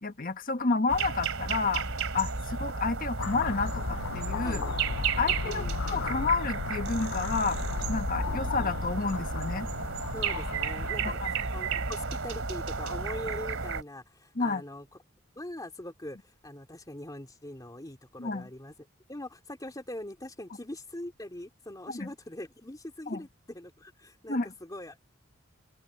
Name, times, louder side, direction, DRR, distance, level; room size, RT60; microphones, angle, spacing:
voice 1, 0.0-1.8 2.1-4.6 5.2-9.7 11.0-11.4 14.3-14.6 18.2-18.5 21.9-22.1 23.1-23.2 24.3-24.5, left 4 dB, 45° left, 1.4 m, -30 dB
sound 1, 0.9-13.8, right 4 dB, 80° right, 2.9 m, -33 dB
sound 2, 3.2-10.9, left 6 dB, 60° left, 0.4 m, -36 dB
voice 2, 4.4-5.8 10.1-14.9 15.4-16.2 16.4-18.7 19.1-25.1, left 1 dB, 20° left, 2.6 m, -42 dB
open air
head